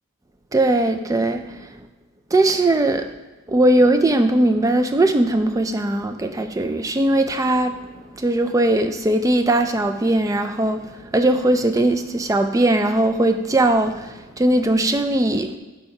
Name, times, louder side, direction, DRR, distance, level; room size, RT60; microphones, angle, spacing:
voice 1, 0.5-1.7 2.3-3.1 3.5-7.8 8.1-15.6, right 1 dB, 15° right, 7 dB, 0.3 m, -19 dB
4.7 x 4.4 x 5.4 m, 1.2 s
head